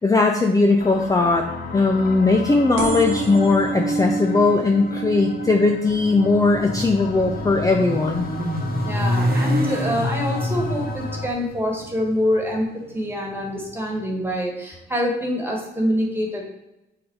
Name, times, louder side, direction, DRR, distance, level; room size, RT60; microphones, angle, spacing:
voice 1, 0.0-8.2, left 3 dB, 15° left, 3 dB, 0.6 m, -19 dB
sound 1, 0.8-11.3, left 3 dB, 50° left, 0.8 m, -34 dB
sound 2, 2.8-10.0 10.5-10.9 11.8-11.9 12.1-12.2 12.4-12.5, right 4 dB, 70° right, 1.0 m, -31 dB
Motorcycle, 5.9-14.1, equal, 50° right, 1.1 m, -28 dB
voice 2, 8.8-16.4, equal, 10° right, 0 dB, 1.7 m, -25 dB
5.9 x 4.1 x 4.8 m, 0.95 s
cardioid pair, 90°, 20 cm